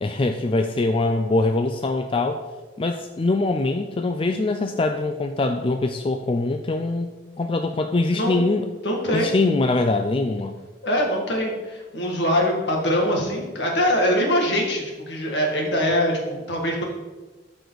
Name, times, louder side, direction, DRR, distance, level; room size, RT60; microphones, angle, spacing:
voice 1, 0.0-2.4 2.8-7.1 7.4-8.7 9.1-10.6, left 2 dB, 30° left, 6 dB, 0.4 m, -23 dB
voice 2, 8.1-8.4 8.8-9.3 10.8-16.8, equal, 70° left, 0 dB, 1.9 m, -23 dB
12.5 x 5.0 x 4.0 m, 1.3 s
head